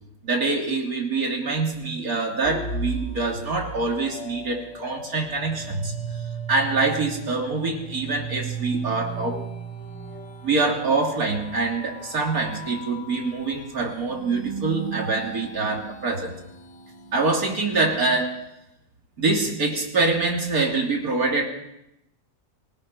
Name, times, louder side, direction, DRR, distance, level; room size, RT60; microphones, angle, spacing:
voice 1, 0.2-5.9 6.5-9.4 10.4-16.3 17.1-18.4 19.2-21.5, right 3 dB, 85° right, 0 dB, 3.4 m, -25 dB
sound 1, 2.4-17.9, right 4 dB, 50° left, 2.6 m, -36 dB
22.5 x 19.5 x 5.9 m, 0.84 s
omnidirectional pair, 1.5 m